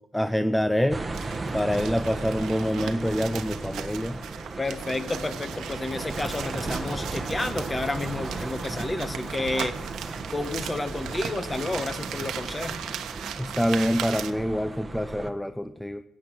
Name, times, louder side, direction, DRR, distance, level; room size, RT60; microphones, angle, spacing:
voice 1, 0.1-1.0 1.5-4.2 13.4-16.0, equal, 5° left, 11 dB, 0.5 m, -26 dB
sound 1, 0.9-15.3, right 3 dB, 20° right, 1.2 m, -36 dB
Crumbling Paper, 1.1-14.3, right 9 dB, 80° right, 1.0 m, -38 dB
voice 2, 4.6-9.9 10.3-12.8, left 2 dB, 20° left, 11 dB, 1.1 m, -31 dB
16.0 x 8.8 x 6.2 m, 0.87 s
cardioid pair, 90°, 0 cm